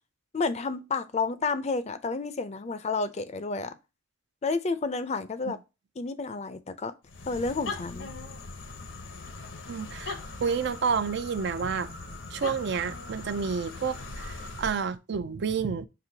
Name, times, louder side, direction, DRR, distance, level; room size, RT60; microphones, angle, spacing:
voice 1, 0.3-3.8 4.4-5.6 6.0-6.9 7.3-8.1, left 4 dB, 35° left, 0.5 m, -30 dB
sound 1, 7.0-14.9, left 3 dB, 80° left, 0.9 m, -40 dB
voice 2, 9.7-11.9 12.3-15.8, right 6 dB, 65° right, 0.4 m, -30 dB
6.1 x 2.9 x 2.7 m
head